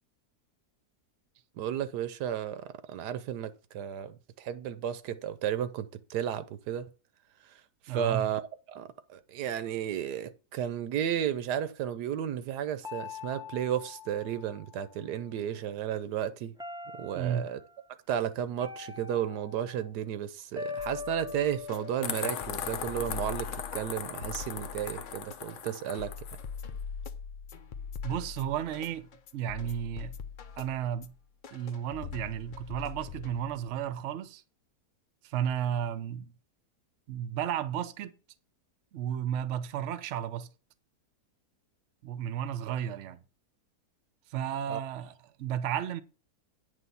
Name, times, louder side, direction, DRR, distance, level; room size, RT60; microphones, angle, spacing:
voice 1, 1.6-6.9 7.8-8.4 8.7-16.5 16.9-17.6 18.1-26.1 44.7-44.8, right 10 dB, 85° right, 1.3 m, -33 dB
voice 2, 7.9-8.3 17.1-17.5 28.0-29.1 29.3-30.1 30.6-31.1 31.5-34.4 35.2-36.3 37.1-38.2 38.9-40.5 42.0-43.2 44.3-46.0, right 9 dB, 60° right, 0.9 m, -33 dB
sound 1, 12.8-15.2 16.6-17.6 18.6-19.9 20.6-22.9, left 5 dB, 5° right, 0.4 m, -43 dB
sound 2, 20.8-33.8, left 6 dB, 80° left, 0.4 m, -43 dB
sound 3, 22.0-26.4, left 8 dB, 60° left, 0.9 m, -38 dB
9.2 x 3.5 x 6.8 m
omnidirectional pair, 1.7 m